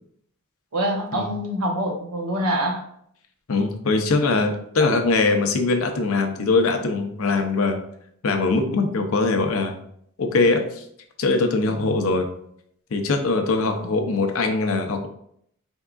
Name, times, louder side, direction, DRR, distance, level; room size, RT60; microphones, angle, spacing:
voice 1, 0.7-2.8 4.8-4.9 11.8-12.1, right 1 dB, 85° right, 2 dB, 0.8 m, -25 dB
voice 2, 3.5-7.8 8.2-9.8 10.2-10.8 11.2-12.3 12.9-15.1, left 3 dB, 70° left, 6 dB, 0.6 m, -22 dB
4.6 x 3.5 x 2.4 m, 0.69 s
head